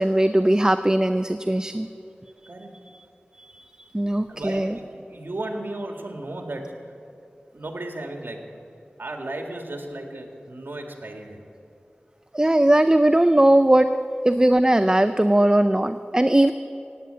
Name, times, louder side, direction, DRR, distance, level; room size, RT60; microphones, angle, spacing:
voice 1, 0.0-1.9 3.4-4.8 12.3-14.0 14.2-16.5, right 1 dB, 20° right, 10 dB, 0.4 m, -19 dB
voice 2, 4.3-6.7 7.5-8.4 9.0-11.4, right 2 dB, 65° right, 3 dB, 2.0 m, -34 dB
17.0 x 9.2 x 7.6 m, 2.7 s
wide cardioid pair, 50°, 4 cm